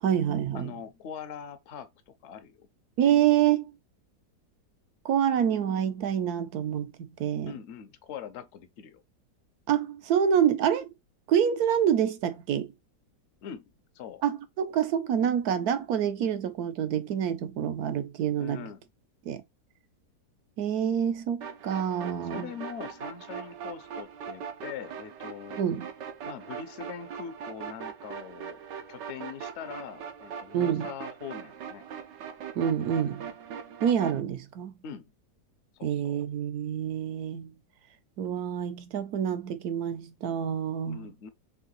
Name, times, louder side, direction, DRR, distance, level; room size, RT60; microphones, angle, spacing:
voice 1, 0.0-0.7 3.0-3.7 5.0-7.5 9.7-10.9 11.3-12.7 14.2-18.6 19.3-19.4 20.6-22.5 25.6-25.9 30.5-30.9 32.6-33.3 33.8-34.7 35.8-37.5 38.2-41.1, right 9 dB, 70° right, 1.2 m, -27 dB
voice 2, 0.5-2.7 7.5-9.0 13.4-14.2 18.4-18.8 22.3-25.6 26.2-28.6 28.9-31.8 34.8-35.1 35.8-36.2 40.9-41.3, left 8 dB, 55° left, 0.8 m, -42 dB
sound 1, 21.4-34.2, right 7 dB, 85° right, 1.5 m, -41 dB
3.7 x 3.4 x 3.9 m
omnidirectional pair, 1.8 m